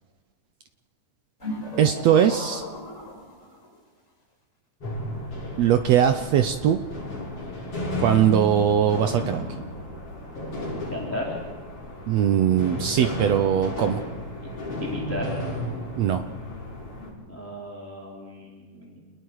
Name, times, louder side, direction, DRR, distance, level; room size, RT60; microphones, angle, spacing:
sound 1, 1.4-3.8, left 1 dB, 20° left, 4.8 m, -36 dB
voice 1, 1.8-2.6 5.6-6.8 8.0-9.4 12.1-14.0 16.0-16.2, right 9 dB, 80° right, 8 dB, 1.5 m, -20 dB
sound 2, 4.8-17.1, left 1 dB, 40° left, 8.3 m, -33 dB
voice 2, 10.9-11.4 14.8-15.4 17.3-19.0, left 1 dB, 5° left, -4 dB, 3.2 m, -34 dB
29.5 x 20.5 x 4.8 m, 1.4 s
omnidirectional pair, 3.9 m